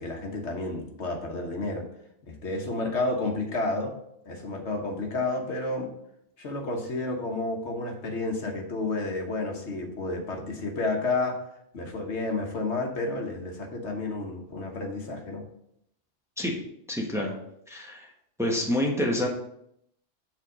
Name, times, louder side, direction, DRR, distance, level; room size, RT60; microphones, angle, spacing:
voice 1, 0.0-1.9 2.3-3.9 4.3-5.9 6.4-11.4 11.7-15.4, left 2 dB, 70° left, 2 dB, 1.4 m, -31 dB
voice 2, 16.9-17.3 17.7-18.1 18.4-19.3, left 1 dB, 5° right, -1 dB, 1.1 m, -27 dB
7.4 x 3.5 x 6.1 m, 0.75 s
omnidirectional pair, 1.2 m